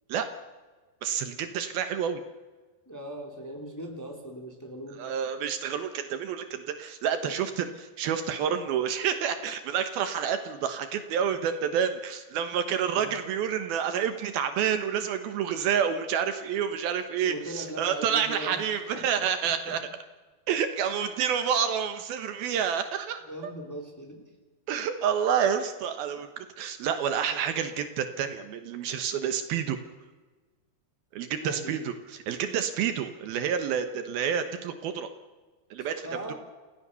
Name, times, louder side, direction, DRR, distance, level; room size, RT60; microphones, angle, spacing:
voice 1, 1.0-2.2 5.0-19.8 20.5-23.5 24.7-29.8 31.1-35.1 35.7-36.3, right 8 dB, 70° right, 8 dB, 2.9 m, -29 dB
voice 2, 2.8-5.2 7.2-7.3 12.9-13.2 17.2-18.6 18.9-19.1 19.4-19.8 23.3-24.3 31.4-31.9 35.8-36.3, right 1 dB, 5° left, 1 dB, 3.1 m, -39 dB
29.5 x 16.5 x 6.9 m, 1.3 s
omnidirectional pair, 4.6 m